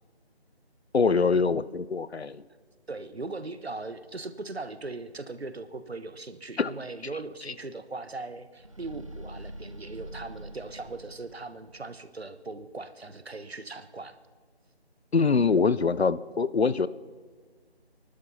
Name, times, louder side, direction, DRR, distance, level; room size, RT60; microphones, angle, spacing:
voice 1, 0.9-2.4 6.6-6.7 15.1-16.9, left 5 dB, 75° left, 17 dB, 0.7 m, -24 dB
voice 2, 2.9-14.1, right 3 dB, 70° right, 11 dB, 1.2 m, -39 dB
sound 1, 8.6-11.9, right 1 dB, 30° right, 0.8 m, -44 dB
26.5 x 12.0 x 4.1 m, 1.5 s
figure-of-eight pair, 165°, 32 cm